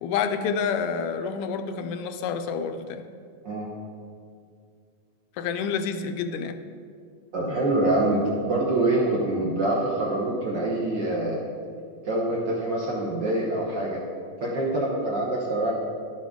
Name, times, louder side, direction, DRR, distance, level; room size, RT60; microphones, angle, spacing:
voice 1, 0.0-3.0 5.4-6.6, left 6 dB, 80° left, 8 dB, 1.8 m, -28 dB
voice 2, 7.3-11.4 12.0-14.0 14.4-15.7, right 2 dB, 65° right, -4 dB, 1.1 m, -25 dB
11.5 x 7.6 x 3.6 m, 2.3 s
omnidirectional pair, 3.4 m